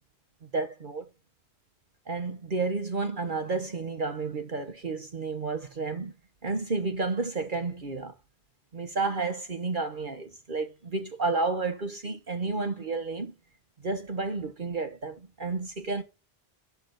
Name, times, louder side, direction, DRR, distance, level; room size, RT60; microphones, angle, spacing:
voice 1, 0.4-1.0 2.1-6.1 6.4-8.1 8.7-13.3 13.8-16.0, right 3 dB, 50° right, 1.3 m, -31 dB
11.5 x 3.9 x 5.8 m
omnidirectional pair, 1.1 m